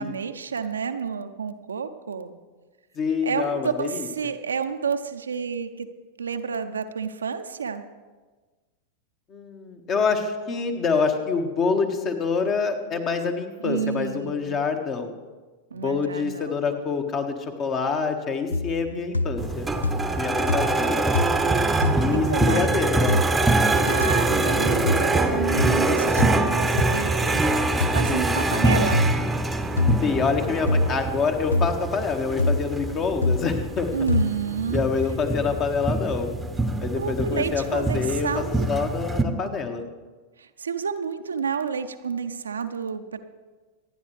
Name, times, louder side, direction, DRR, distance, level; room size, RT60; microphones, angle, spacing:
voice 1, 0.0-2.3 3.2-5.9 6.2-7.8 13.6-14.6 15.7-16.6 18.9-19.1 22.1-22.7 23.8-27.4 27.9-29.0 33.9-34.8 37.0-38.7 40.4-43.2, right 6 dB, 70° right, 8 dB, 0.7 m, -30 dB
voice 2, 2.9-4.1 9.3-15.1 15.7-19.7 20.2-21.2 21.9-23.2 28.1-28.6 30.0-33.9 34.7-36.3 36.8-39.8, left 5 dB, 30° left, 6 dB, 1.6 m, -26 dB
sound 1, 18.5-18.9 19.1-19.6 19.8-20.2 20.5-20.9 21.1-21.5 21.8-22.0 23.1-23.3 24.0-24.1 24.9-25.1 25.6-25.8 26.2-26.4 26.8-26.9 27.8-28.0 28.9-29.2 29.8-30.1 30.7-31.0 31.5-31.7 32.4-32.7 33.2-33.5 34.1-34.3, left 2 dB, 80° left, 0.5 m, -24 dB
sound 2, 19.4-39.2, right 2 dB, 10° right, 1.0 m, -24 dB
25.5 x 9.9 x 3.3 m, 1.3 s
figure-of-eight pair, 90°, 0 cm